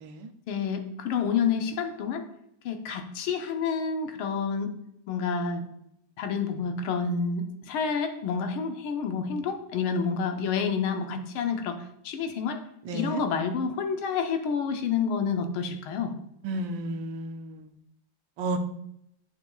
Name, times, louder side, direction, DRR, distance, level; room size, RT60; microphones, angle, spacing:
voice 1, 0.5-2.3 2.7-4.7 5.1-5.6 6.2-12.6 12.9-16.1, left 6 dB, 90° left, 6 dB, 1.7 m, -29 dB
voice 2, 12.8-13.2 16.4-17.7 18.4-18.6, right 2 dB, 75° right, 6 dB, 1.3 m, -32 dB
8.8 x 5.9 x 2.3 m, 0.79 s
omnidirectional pair, 2.2 m